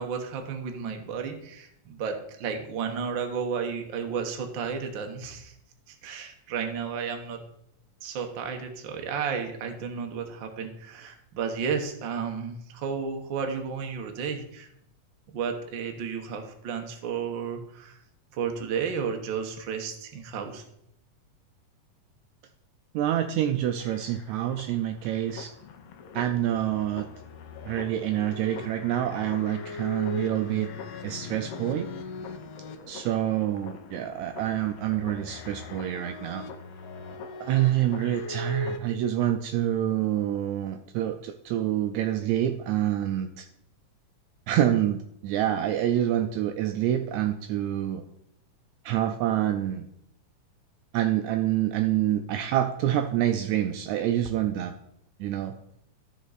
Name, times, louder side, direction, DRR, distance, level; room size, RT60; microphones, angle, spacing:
voice 1, 0.0-5.5 5.9-7.4 8.0-14.7 15.3-18.0 18.3-20.6, right 6 dB, 60° right, 4 dB, 1.2 m, -32 dB
voice 2, 22.9-25.5 26.1-27.1 27.7-30.7 31.0-31.9 32.9-36.4 37.4-43.5 44.5-48.0 48.9-49.9 50.9-54.7 55.2-55.5, right 11 dB, 80° right, 7 dB, 1.7 m, -27 dB
sound 1, 23.8-38.8, left 4 dB, 70° left, 1.6 m, -41 dB
13.0 x 5.3 x 4.0 m, 0.74 s
omnidirectional pair, 3.6 m